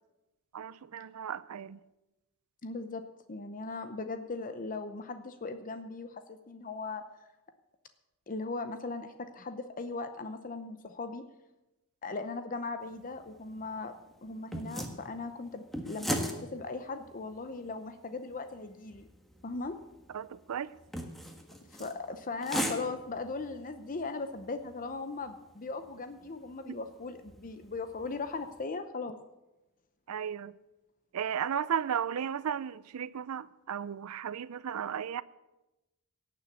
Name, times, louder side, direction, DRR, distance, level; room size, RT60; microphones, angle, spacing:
voice 1, 0.5-1.8 20.1-20.7 30.1-30.5 31.1-35.2, right 8 dB, 80° right, 0.4 m, -35 dB
voice 2, 2.6-7.0 8.3-11.2 12.0-14.0 14.2-19.1 19.4-19.8 21.7-29.2, left 3 dB, 40° left, 0.7 m, -38 dB
sound 1, 12.8-28.6, equal, ahead, 1.5 m, -42 dB
17.5 x 6.9 x 8.2 m
head